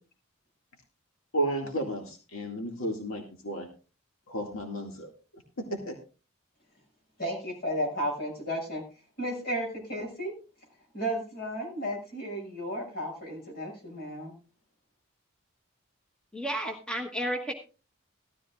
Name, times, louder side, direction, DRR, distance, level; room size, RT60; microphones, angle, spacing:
voice 1, 1.3-3.7 4.3-5.4 5.7-6.0, right 1 dB, 80° left, 2 dB, 2.2 m, -33 dB
voice 2, 7.2-8.8 9.2-10.3 10.9-14.3, equal, 45° left, 0 dB, 6.4 m, -33 dB
voice 3, 16.3-17.5, equal, 5° left, 1 dB, 1.2 m, -32 dB
16.5 x 13.5 x 2.4 m, 0.34 s
head